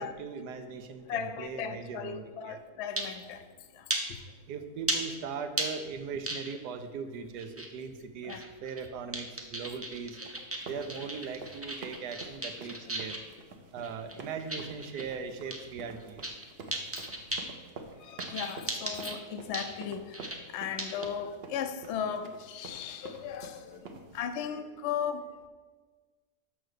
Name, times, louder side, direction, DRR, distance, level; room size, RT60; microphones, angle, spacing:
voice 1, 0.0-2.6 4.5-10.2 10.6-13.2 13.7-16.4, right 5 dB, 90° right, 8 dB, 1.3 m, -39 dB
voice 2, 1.1-3.4 3.7-3.8 8.2-8.4 18.0-20.2 20.5-25.2, left 8 dB, 60° left, 9 dB, 0.8 m, -36 dB
sound 1, 3.0-3.2 3.9-4.0 4.9-5.0 5.6-5.7 6.3-6.7 7.4-7.7 8.2-8.9 9.1-13.3 13.8-15.0 15.5-15.6 16.0-16.4 16.7-17.5 18.2-19.1 19.5-19.7 20.1-20.4 20.8-21.0, right 1 dB, 20° right, 0.4 m, -35 dB
sound 2, 9.6-24.2, right 3 dB, 50° right, 0.8 m, -48 dB
6.3 x 5.9 x 6.5 m, 1.4 s
omnidirectional pair, 1.7 m